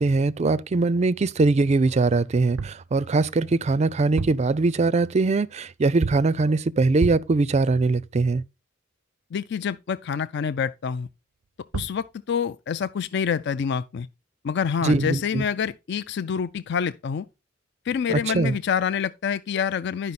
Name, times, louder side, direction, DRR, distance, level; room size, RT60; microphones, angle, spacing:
voice 1, 0.0-8.4 14.8-15.5 18.1-18.5, right 3 dB, 35° right, 0.4 m, -22 dB
sound 1, 2.6-2.9 4.0-4.6 6.0-6.4 7.0-7.4 11.4-11.5 11.7-12.1, right 5 dB, 85° right, 0.5 m, -30 dB
voice 2, 9.3-11.1 11.7-14.1 14.4-17.3 17.9-20.1, left 7 dB, 55° left, 0.4 m, -27 dB
10.5 x 5.5 x 4.1 m
head